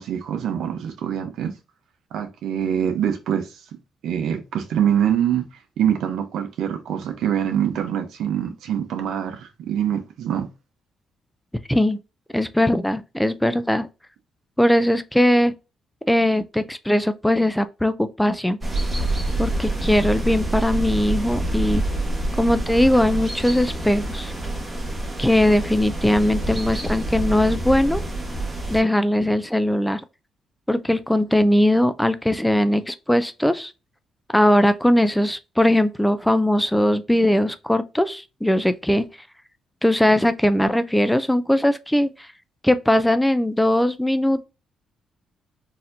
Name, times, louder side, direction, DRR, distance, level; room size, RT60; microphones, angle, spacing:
voice 1, 0.0-1.5 2.1-3.6 4.0-5.4 5.8-10.5, right 9 dB, 80° right, 0.8 m, -24 dB
voice 2, 12.3-13.9 14.6-15.5 16.0-18.6 19.4-21.8 22.4-24.3 25.2-28.0 28.7-30.0 30.7-33.7 34.3-39.1 39.8-42.3 42.6-44.5, left 1 dB, 5° left, 0.3 m, -20 dB
sound 1, 18.6-28.8, right 2 dB, 20° right, 1.2 m, -27 dB
4.1 x 2.7 x 2.6 m
cardioid pair, 90°, 0 cm